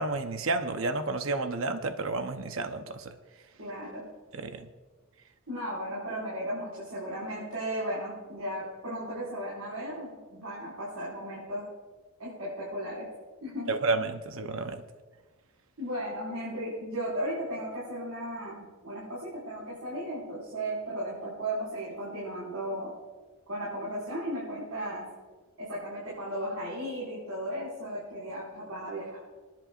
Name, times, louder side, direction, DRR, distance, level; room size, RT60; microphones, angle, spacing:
voice 1, 0.0-3.0 4.3-4.7 13.7-14.8, right 3 dB, 70° right, 7 dB, 0.8 m, -31 dB
voice 2, 3.6-4.1 5.5-11.7 12.2-13.1 13.4-13.8 15.8-22.9 23.5-25.1 25.6-29.2, right 1 dB, 85° right, -8 dB, 5.2 m, -35 dB
29.5 x 11.0 x 2.5 m, 1.4 s
head